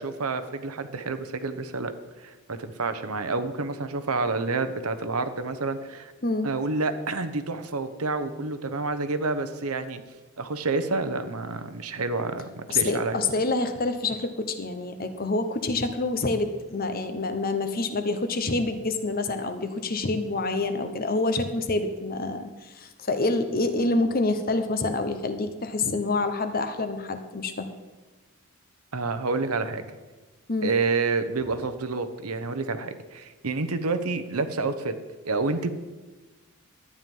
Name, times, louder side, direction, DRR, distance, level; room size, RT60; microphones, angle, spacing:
voice 1, 0.0-1.9 2.2-6.1 6.4-10.0 10.4-13.2 28.9-29.8 30.6-34.9 35.2-35.7, right 3 dB, 85° right, 10 dB, 1.0 m, -29 dB
voice 2, 6.2-6.5 12.7-27.7 30.5-30.7, left 3 dB, 40° left, 8 dB, 1.0 m, -27 dB
12.0 x 9.5 x 5.4 m, 1.2 s
head